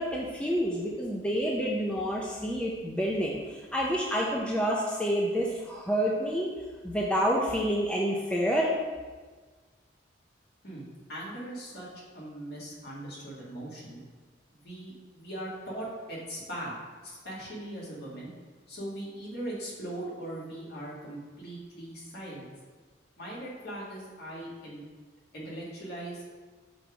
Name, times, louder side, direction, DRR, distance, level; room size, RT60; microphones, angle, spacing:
voice 1, 0.0-6.5 6.8-8.7, equal, 5° left, -3 dB, 0.5 m, -28 dB
voice 2, 10.6-11.9 12.1-14.0 14.5-16.8 17.0-18.3 18.7-22.5 23.2-24.8 25.3-26.4, right 1 dB, 55° left, -5 dB, 1.8 m, -40 dB
6.1 x 3.4 x 4.9 m, 1.4 s
head